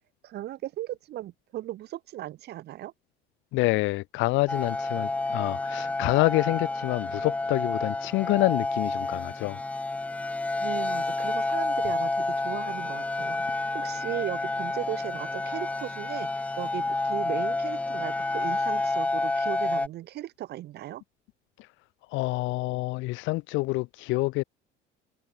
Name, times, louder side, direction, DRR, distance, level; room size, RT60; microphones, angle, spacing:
voice 1, 0.2-2.9 10.6-21.0, right 14 dB, 55° right, 2.7 m, -37 dB
voice 2, 3.5-9.6 22.1-24.4, left 21 dB, 75° left, 2.2 m, -27 dB
sound 1, 4.5-19.9, left 2 dB, 5° left, 0.3 m, -29 dB
cardioid pair, 140°, 20 cm